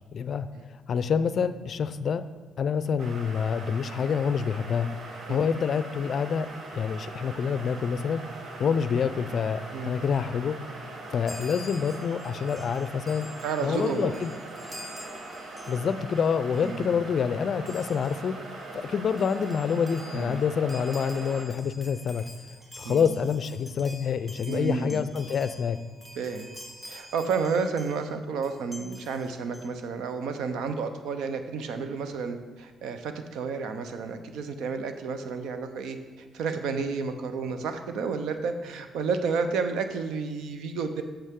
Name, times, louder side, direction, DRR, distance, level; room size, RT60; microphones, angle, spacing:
voice 1, 0.1-0.5 0.9-2.2 2.6-4.9 5.3-6.5 6.7-8.2 8.6-10.6 11.1-13.3 13.6-14.3 15.7-18.4 18.7-22.2 22.8-25.8, left 6 dB, 55° left, 13 dB, 0.4 m, -27 dB
sound 1, 3.0-21.5, right 2 dB, 60° right, 1.2 m, -41 dB
Chime, 11.3-16.2 16.5-16.8 17.7-18.3 18.8-18.9 19.1-28.1 28.4-29.7, left 1 dB, 10° right, 1.3 m, -48 dB
voice 2, 13.4-14.3 16.6-17.0 20.1-20.4 22.8-23.1 24.5-25.0 26.2-26.5 26.8-41.0, right 5 dB, 85° right, 8 dB, 0.7 m, -31 dB
8.3 x 7.1 x 3.7 m, 1.3 s
cardioid pair, 90°, 0 cm